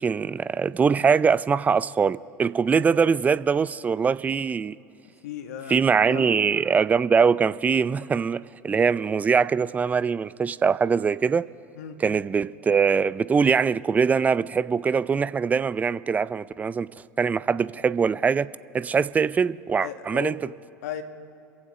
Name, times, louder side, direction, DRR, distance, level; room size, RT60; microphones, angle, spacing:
voice 1, 0.0-4.8 5.7-11.5 12.0-16.9 17.2-18.5 18.7-20.4, right 6 dB, 15° right, 0.4 m, -22 dB
voice 2, 5.2-6.4 11.7-12.0 19.8-20.5 20.8-21.0, left 8 dB, 70° left, 1.2 m, -36 dB
28.5 x 15.5 x 3.1 m
hypercardioid pair, 80°, 9 cm